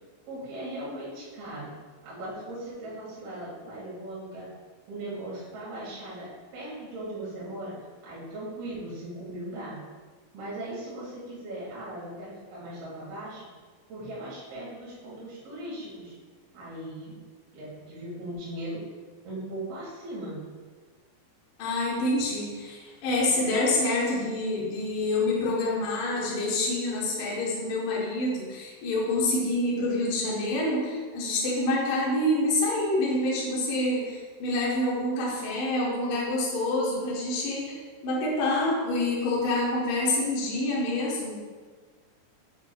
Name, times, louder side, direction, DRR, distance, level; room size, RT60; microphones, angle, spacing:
voice 1, 0.3-1.8 2.0-4.5 4.9-7.7 8.0-9.8 10.3-13.4 13.9-16.1 16.5-17.1 17.5-18.8 19.2-20.4, right 1 dB, 65° right, -8 dB, 3.4 m, -38 dB
voice 2, 21.6-37.8 38.0-41.4, left 2 dB, 75° left, -4 dB, 1.9 m, -27 dB
7.7 x 5.8 x 2.2 m, 1.5 s
omnidirectional pair, 5.1 m